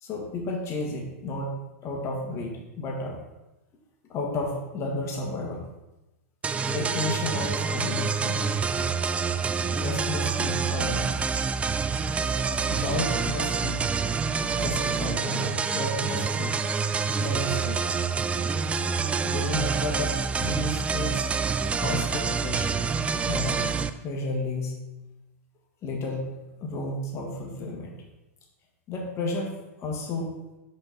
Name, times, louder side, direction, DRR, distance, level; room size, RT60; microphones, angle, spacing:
voice 1, 0.0-3.2 4.1-5.7 6.7-8.6 9.8-11.2 12.7-13.9 14.5-16.6 17.2-18.0 19.2-21.3 21.8-22.8 23.3-23.8 24.0-24.9 25.8-28.0 28.9-30.3, left 2 dB, 35° left, 0 dB, 1.9 m, -32 dB
sound 1, 6.4-23.9, right 5 dB, 15° right, 0.4 m, -27 dB
7.5 x 5.2 x 4.1 m, 1.0 s
hypercardioid pair, 115°, 9 cm